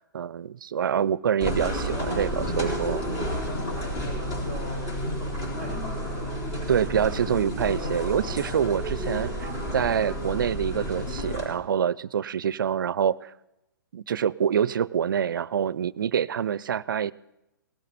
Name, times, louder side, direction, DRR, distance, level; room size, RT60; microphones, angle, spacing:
voice 1, 0.1-3.0 6.7-13.3 13.9-17.1, right 8 dB, 70° right, 21 dB, 0.4 m, -26 dB
sound 1, 1.4-11.5, equal, 35° left, 3.9 m, -31 dB
voice 2, 2.4-6.3 7.8-8.1, left 1 dB, 60° left, -3 dB, 4.4 m, -38 dB
sound 2, 6.7-12.2, left 1 dB, 75° left, 2.3 m, -44 dB
18.5 x 12.0 x 4.0 m, 0.90 s
hypercardioid pair, 130°, 11 cm